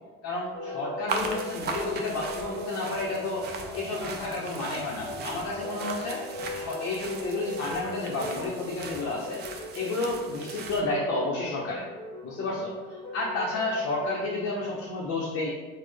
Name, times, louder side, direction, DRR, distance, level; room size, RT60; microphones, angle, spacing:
voice 1, 0.2-3.5 3.7-6.2 6.5-9.4 9.7-11.9 12.2-12.7 13.1-15.5, left 2 dB, 45° left, -3 dB, 0.6 m, -31 dB
sound 1, 0.5-14.9, left 2 dB, 15° left, 1.0 m, -40 dB
sound 2, 1.1-10.8, right 4 dB, 35° right, 0.4 m, -39 dB
4.1 x 2.1 x 3.2 m, 1.3 s
cardioid pair, 130°, 32 cm